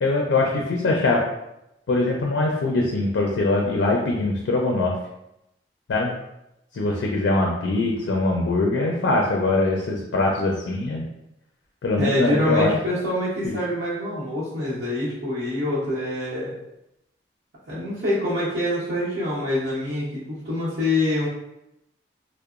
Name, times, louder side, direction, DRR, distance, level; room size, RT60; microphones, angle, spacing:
voice 1, 0.0-1.3 1.9-5.0 5.9-6.1 6.7-11.1 11.8-12.7 13.4-13.5, left 2 dB, 85° left, 0 dB, 0.4 m, -22 dB
voice 2, 12.0-16.5 17.7-21.3, left 1 dB, 75° right, -12 dB, 0.8 m, -25 dB
2.8 x 2.0 x 2.4 m, 0.86 s
head